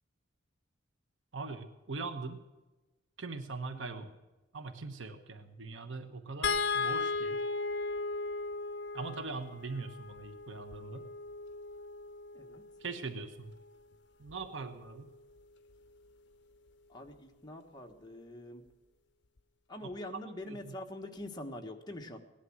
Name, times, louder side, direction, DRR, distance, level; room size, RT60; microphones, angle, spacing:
voice 1, 1.3-2.4 3.2-4.1 4.5-7.4 8.9-11.1 12.8-13.5 14.2-15.1 20.4-20.8, right 3 dB, 75° right, 8 dB, 1.1 m, -41 dB
voice 2, 3.7-4.1 12.3-12.6 16.9-18.6 19.7-22.2, left 1 dB, 20° left, 2 dB, 1.5 m, -44 dB
sound 1, 6.4-12.8 14.3-14.5 14.8-15.0, left 4 dB, 60° left, 0.7 m, -36 dB
18.5 x 11.0 x 6.4 m, 1.2 s
head